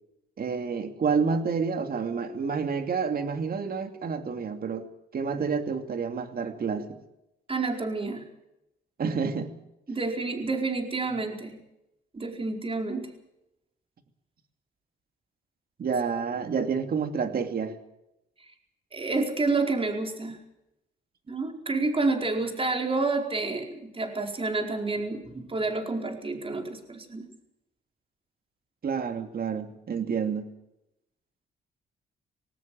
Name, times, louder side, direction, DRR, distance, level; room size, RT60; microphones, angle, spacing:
voice 1, 0.4-7.0 9.0-9.5 15.8-17.8 28.8-30.5, right 5 dB, 50° right, 7 dB, 2.6 m, -29 dB
voice 2, 7.5-8.3 9.9-11.6 12.1-13.1 18.4-18.5 18.9-20.4 21.3-27.3, right 3 dB, 30° right, 3 dB, 4.6 m, -29 dB
20.5 x 18.0 x 7.7 m, 0.87 s
cardioid pair, 90°, 20 cm